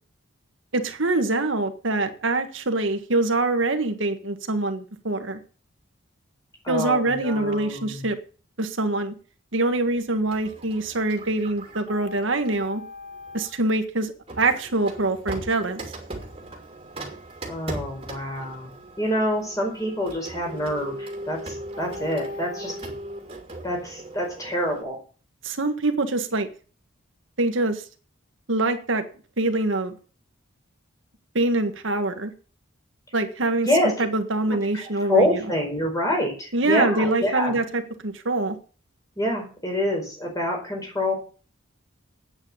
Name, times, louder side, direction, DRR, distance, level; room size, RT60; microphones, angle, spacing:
voice 1, 0.7-5.4 6.7-8.2 8.6-9.1 9.5-12.8 13.3-15.8 25.4-26.5 27.4-27.8 28.5-29.0 29.4-29.9 31.3-32.3 33.1-33.7 34.0-35.4 36.5-38.5, right 2 dB, 65° right, 7 dB, 1.5 m, -24 dB
voice 2, 6.6-8.1 17.5-18.7 19.0-22.7 23.6-25.0 33.6-34.0 34.5-34.8 35.1-37.6 39.2-41.1, left 1 dB, 15° left, 0 dB, 4.9 m, -26 dB
Printer, 10.3-13.6 14.3-24.8, right 1 dB, 25° right, 2.7 m, -38 dB
8.8 x 8.7 x 8.8 m, 0.38 s
head